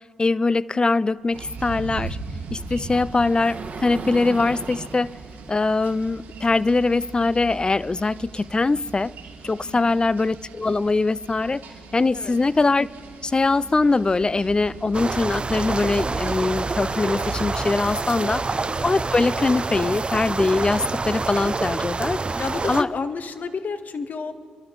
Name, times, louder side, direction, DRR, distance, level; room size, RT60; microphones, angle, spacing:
voice 1, 0.2-2.2 2.5-5.1 5.5-9.1 9.4-11.6 11.9-12.9 13.2-18.6 18.8-22.2 22.7-22.9, left 3 dB, 25° left, 0.3 m, -22 dB
Sliding door, 1.3-6.3, right 4 dB, 45° right, 1.3 m, -38 dB
sound 1, 1.3-18.5, right 4 dB, 75° right, 2.9 m, -40 dB
voice 2, 9.7-10.1 12.1-12.3 18.1-18.5 22.4-24.3, left 4 dB, 50° left, 0.9 m, -31 dB
sound 2, 14.9-22.8, right 3 dB, 30° right, 0.5 m, -27 dB
28.0 x 12.0 x 3.9 m
hypercardioid pair, 50°, 4 cm